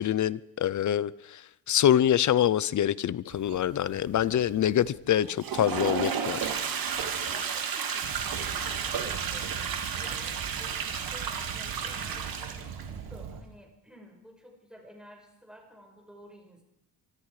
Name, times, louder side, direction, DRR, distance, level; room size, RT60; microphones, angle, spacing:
voice 1, 0.0-1.4 1.7-6.5, left 10 dB, 45° left, 0.7 m, -25 dB
sound 1, 3.3-9.5, right 7 dB, 70° right, 3.4 m, -42 dB
Toilet flush, 5.2-12.9, right 7 dB, 55° right, 2.5 m, -32 dB
voice 2, 7.0-16.6, equal, ahead, 5.9 m, -52 dB
Fire, 8.0-13.4, right 7 dB, 85° right, 2.7 m, -41 dB
25.0 x 24.0 x 5.0 m
cardioid pair, 165°, 42 cm